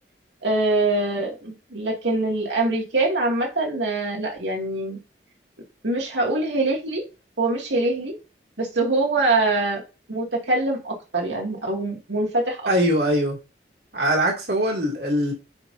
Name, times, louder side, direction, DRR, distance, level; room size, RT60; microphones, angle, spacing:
voice 1, 0.4-5.0 5.8-7.0 7.4-8.2 8.6-9.8 10.1-12.7, right 2 dB, 90° right, 2.1 m, -24 dB
voice 2, 12.7-13.4 13.9-15.3, equal, 65° right, 2.3 m, -22 dB
9.4 x 5.6 x 2.6 m
head